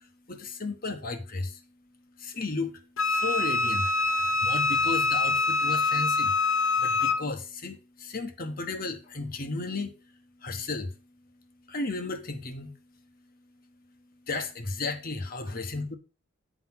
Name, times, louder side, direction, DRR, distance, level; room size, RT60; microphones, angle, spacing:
voice 1, 0.3-1.6 2.2-2.8 3.1-3.9 4.4-6.3 6.8-9.9 10.4-10.9 11.7-12.7 14.3-16.0, left 3 dB, 45° left, 1.1 m, -34 dB
Wind instrument woodwind instrument, 3.0-7.2, left 3 dB, 75° left, 0.9 m, -25 dB
9.2 x 4.0 x 5.7 m
head